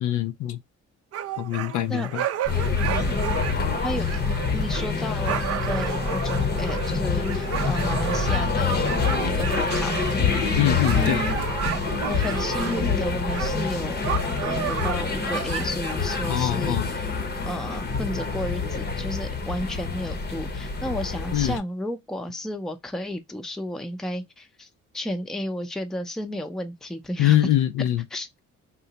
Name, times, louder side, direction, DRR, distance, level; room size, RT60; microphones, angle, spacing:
voice 1, 0.0-0.6 1.4-2.2 10.6-11.2 16.3-16.9 21.3-21.6 27.2-28.0, left 12 dB, 80° left, 0.5 m, -23 dB
sound 1, 1.1-13.0 13.3-13.5 14.0-16.0, right 11 dB, 50° right, 0.4 m, -32 dB
sound 2, 2.5-21.6, left 4 dB, 35° left, 0.7 m, -26 dB
voice 2, 3.8-4.2 4.5-8.9 9.2-10.3 10.9-11.4 12.0-14.0 14.4-17.1 17.4-24.7 24.9-27.5 28.1-28.4, equal, ahead, 0.5 m, -32 dB
sound 3, 5.0-14.3, right 3 dB, 25° right, 0.9 m, -40 dB
3.7 x 2.1 x 2.8 m
cardioid pair, 90°, 30 cm